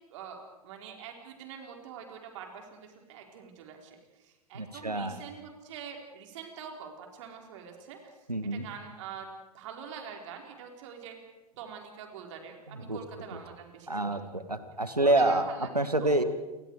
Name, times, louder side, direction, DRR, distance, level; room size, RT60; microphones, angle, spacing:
voice 1, 0.1-8.0 8.5-11.2 11.5-14.2 15.0-15.7 16.0-16.1, right 7 dB, 50° right, 2 dB, 4.7 m, -45 dB
voice 2, 4.5-5.2 8.3-8.7 12.7-13.0 13.3-13.4 13.9-16.2, right 2 dB, 90° right, 10 dB, 1.9 m, -28 dB
28.5 x 25.0 x 4.9 m, 1.1 s
figure-of-eight pair, 95°, 20 cm